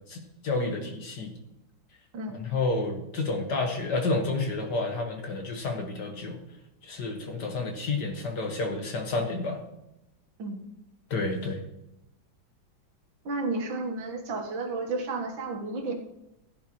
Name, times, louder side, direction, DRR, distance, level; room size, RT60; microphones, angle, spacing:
voice 1, 0.1-1.4 2.3-6.4 6.8-9.6 11.1-11.6, left 3 dB, 55° left, 3 dB, 1.9 m, -30 dB
voice 2, 13.3-15.9, right 3 dB, 70° right, 4 dB, 2.0 m, -32 dB
15.5 x 9.9 x 3.0 m, 0.88 s
omnidirectional pair, 2.2 m